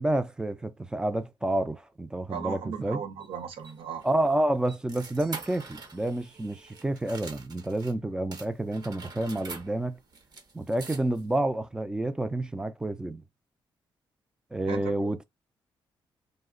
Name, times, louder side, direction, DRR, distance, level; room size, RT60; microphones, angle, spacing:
voice 1, 0.0-3.0 4.0-10.0 10.5-13.2 14.5-15.2, right 1 dB, 10° right, 0.4 m, -29 dB
voice 2, 2.3-4.0 14.7-15.2, right 7 dB, 90° right, 0.8 m, -37 dB
sound 1, 3.2-7.9 8.3-11.4, right 4 dB, 45° right, 0.8 m, -46 dB
2.3 x 2.1 x 3.6 m
cardioid pair, 110°, 9 cm